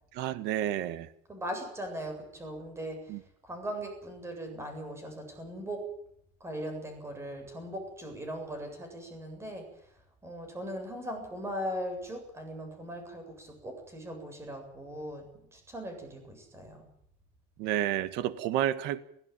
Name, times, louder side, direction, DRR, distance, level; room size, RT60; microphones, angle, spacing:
voice 1, 0.1-1.1 3.1-3.2 17.6-19.0, right 12 dB, 85° right, 14 dB, 1.7 m, -30 dB
voice 2, 1.3-5.8 6.4-9.9 10.2-15.3 15.5-16.9, equal, 15° right, 5 dB, 7.6 m, -39 dB
23.0 x 16.0 x 9.0 m, 0.70 s
cardioid pair, 155°, 17 cm